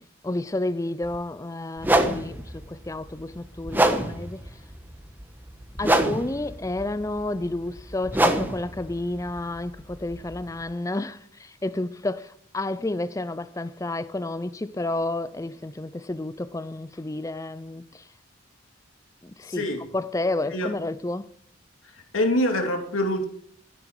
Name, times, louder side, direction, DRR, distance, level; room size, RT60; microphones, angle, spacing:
voice 1, 0.0-4.5 5.8-18.0 19.2-19.6 19.9-21.3, left 2 dB, 15° left, 0.5 m, -31 dB
sound 1, 1.0-1.2 1.8-10.6, right 1 dB, 10° right, 1.2 m, -26 dB
voice 2, 19.4-19.8 20.5-20.7 21.8-23.2, left 1 dB, 80° left, 2.9 m, -25 dB
14.0 x 11.0 x 4.8 m
head